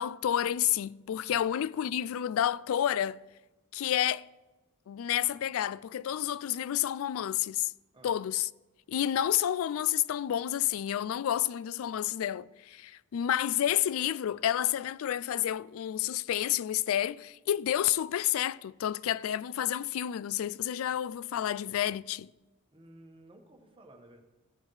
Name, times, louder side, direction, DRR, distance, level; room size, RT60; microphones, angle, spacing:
voice 1, 0.0-3.2 3.7-4.3 4.9-7.7 8.0-8.5 8.9-22.3, left 11 dB, 65° left, 0.3 m, -30 dB
voice 2, 22.7-24.2, right 1 dB, 25° right, 1.3 m, -55 dB
15.5 x 7.3 x 3.2 m
head